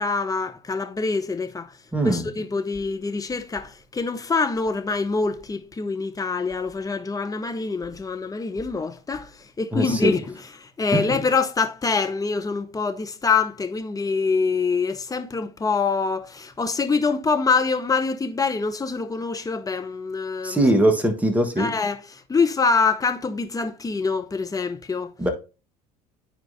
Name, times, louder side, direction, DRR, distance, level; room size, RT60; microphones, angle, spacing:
voice 1, 0.0-1.7 2.0-20.7 21.6-25.1, left 4 dB, 15° left, 0.8 m, -25 dB
voice 2, 1.9-2.3 9.7-10.1 10.9-11.1 20.4-21.7 25.2-25.3, right 1 dB, 5° right, 1.4 m, -21 dB
12.0 x 4.6 x 2.7 m
figure-of-eight pair, 65°, 20 cm